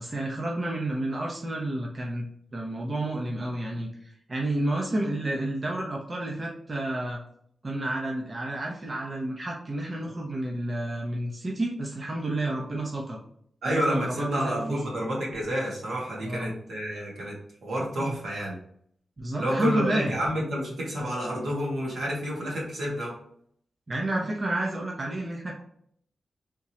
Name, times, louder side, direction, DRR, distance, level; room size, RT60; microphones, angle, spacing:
voice 1, 0.0-2.2 2.5-7.2 7.6-13.2 13.7-15.0 16.2-16.5 18.0-18.1 19.2-20.2 23.9-25.6, right 1 dB, 35° right, -1 dB, 0.7 m, -30 dB
voice 2, 13.6-17.3 17.6-18.5 19.4-23.1, equal, 80° right, -3 dB, 1.5 m, -29 dB
3.6 x 3.0 x 2.8 m, 0.65 s
cardioid pair, 85°, 0 cm